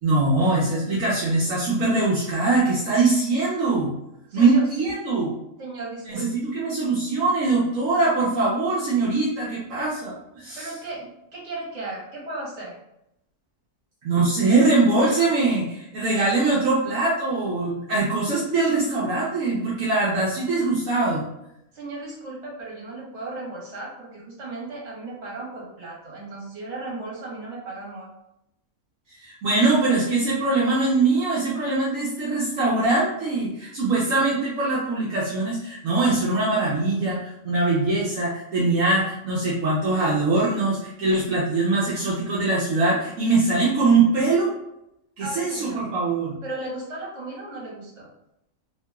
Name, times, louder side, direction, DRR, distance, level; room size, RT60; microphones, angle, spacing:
voice 1, 0.0-3.9 4.3-5.4 6.0-10.7 14.0-21.2 29.1-44.5 45.2-46.4, right 3 dB, 70° right, -6 dB, 1.0 m, -22 dB
voice 2, 4.3-4.7 5.6-6.3 10.5-12.7 21.7-28.1 45.2-45.8 46.4-48.1, right 2 dB, 55° right, -5 dB, 1.4 m, -35 dB
2.9 x 2.8 x 2.2 m, 0.82 s
omnidirectional pair, 1.5 m